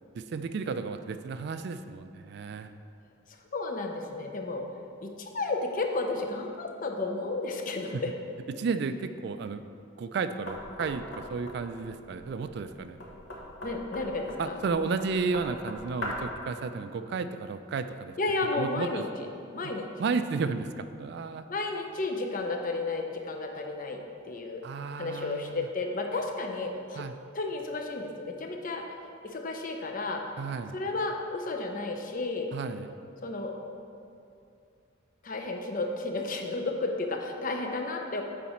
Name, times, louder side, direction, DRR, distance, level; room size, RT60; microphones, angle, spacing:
voice 1, 0.1-2.7 7.9-8.0 8.5-9.7 10.0-11.0 11.3-13.0 14.4-18.1 18.5-19.0 19.6-19.7 20.0-21.5 24.6-25.7 27.0-27.1 30.4-30.8 32.5-32.9, right 4 dB, 55° right, 10 dB, 0.3 m, -33 dB
voice 2, 3.5-4.7 5.0-8.1 13.6-14.6 18.2-19.3 19.5-19.9 21.5-24.6 25.0-27.1 27.3-28.8 29.2-30.2 30.7-32.5 33.2-33.5 35.2-38.2, left 3 dB, 45° left, 3 dB, 0.6 m, -32 dB
Knock, 10.5-16.4, left 1 dB, 65° left, 1.2 m, -40 dB
7.1 x 4.9 x 4.3 m, 2.5 s
head